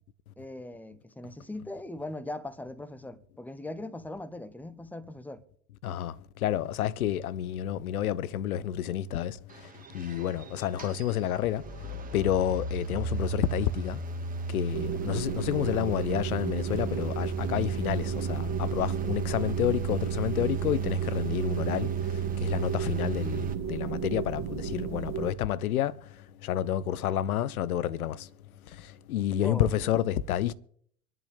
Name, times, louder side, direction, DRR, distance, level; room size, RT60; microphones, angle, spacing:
voice 1, 0.4-5.4 29.4-29.9, left 2 dB, 5° left, 0.9 m, -40 dB
voice 2, 5.8-6.1 6.4-9.4 9.9-11.6 12.1-14.0 14.5-21.9 22.4-25.9 26.4-28.3 29.1-30.5, left 11 dB, 75° left, 0.8 m, -29 dB
sound 1, 9.5-23.5, right 5 dB, 20° right, 1.7 m, -34 dB
sound 2, 14.7-25.3, right 9 dB, 35° right, 1.6 m, -34 dB
25.0 x 11.0 x 3.5 m
hypercardioid pair, 90°, 43 cm